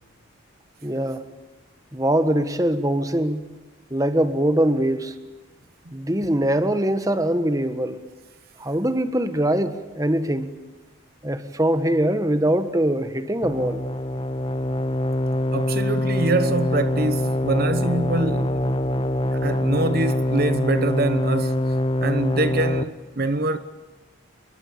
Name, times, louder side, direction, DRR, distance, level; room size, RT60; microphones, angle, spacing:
voice 1, 0.8-1.2 1.9-3.5 3.9-5.2 5.9-8.0 8.6-10.5 11.2-13.8, right 1 dB, 15° right, 1.4 m, -22 dB
sound 1, 13.4-22.8, left 1 dB, 25° left, 0.9 m, -24 dB
voice 2, 15.5-18.7 19.3-21.8 22.0-23.6, right 2 dB, 45° right, 1.0 m, -25 dB
29.0 x 22.0 x 8.7 m
head